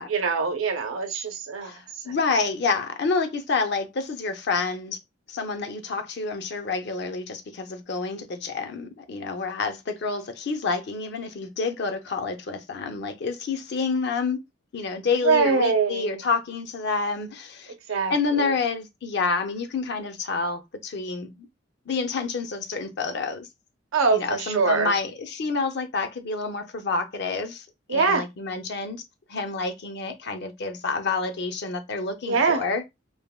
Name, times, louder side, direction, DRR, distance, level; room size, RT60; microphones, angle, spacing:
voice 1, 0.0-1.8 2.1-2.2 15.2-16.2 17.9-18.6 23.9-24.9 27.9-28.2 32.2-32.6, right 4 dB, 90° right, 0.7 m, -23 dB
voice 2, 1.6-5.0 5.3-14.4 14.7-17.7 18.1-21.5 21.9-23.5 24.1-29.0 29.3-32.8, left 4 dB, 55° left, 0.5 m, -28 dB
3.3 x 2.2 x 2.3 m
head